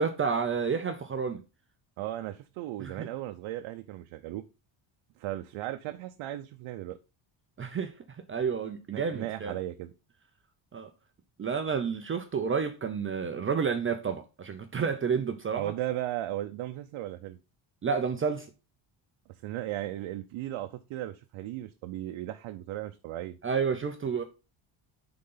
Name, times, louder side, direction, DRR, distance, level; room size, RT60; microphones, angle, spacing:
voice 1, 0.0-1.4 2.8-3.1 7.6-7.9 8.3-9.5 10.7-10.9 11.4-15.7 17.8-18.5 23.4-24.2, right 6 dB, 25° right, 0.6 m, -30 dB
voice 2, 2.0-4.4 5.2-7.0 8.9-9.9 15.5-17.4 19.4-23.4, right 14 dB, 75° right, 0.7 m, -36 dB
9.6 x 3.9 x 3.8 m
cardioid pair, 150°, 49 cm